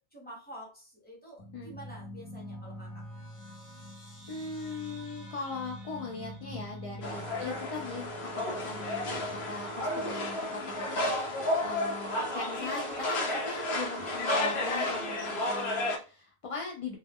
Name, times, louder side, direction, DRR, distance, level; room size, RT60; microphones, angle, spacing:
voice 1, 0.1-3.0 11.6-11.8, right 1 dB, 10° left, -3 dB, 0.9 m, -48 dB
sound 1, 1.4-12.2, equal, 40° left, 0.7 m, -46 dB
voice 2, 4.3-9.1 9.3-17.0, left 4 dB, 60° left, 0 dB, 0.3 m, -39 dB
sound 2, 7.0-16.0, left 1 dB, 85° left, 0.9 m, -32 dB
2.2 x 2.1 x 3.4 m, 0.35 s
omnidirectional pair, 1.1 m